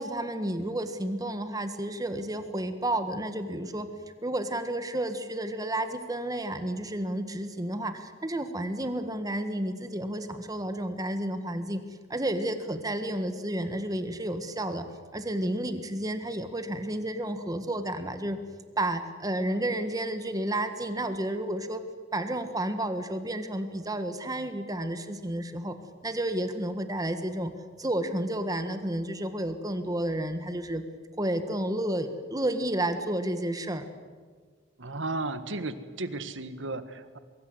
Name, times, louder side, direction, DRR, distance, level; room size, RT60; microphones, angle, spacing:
voice 1, 0.0-3.9 4.2-11.8 12.1-14.9 15.1-18.4 18.8-21.8 22.1-25.8 26.0-27.5 27.8-30.8 31.2-33.8, right 1 dB, 20° right, 8 dB, 1.7 m, -31 dB
voice 2, 34.8-37.2, right 2 dB, 90° right, 11 dB, 1.7 m, -34 dB
23.5 x 23.5 x 8.0 m, 1.6 s
head